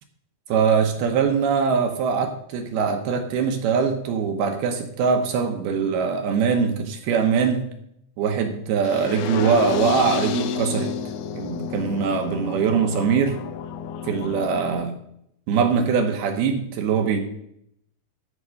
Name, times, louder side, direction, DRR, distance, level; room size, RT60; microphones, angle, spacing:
voice 1, 0.5-7.7 8.2-10.9 11.4-13.4 14.0-15.0 15.5-17.2, right 6 dB, 75° right, 5 dB, 2.6 m, -22 dB
sound 1, 8.9-14.8, left 7 dB, 85° left, 2.2 m, -30 dB
13.5 x 5.1 x 6.4 m, 0.74 s
omnidirectional pair, 5.2 m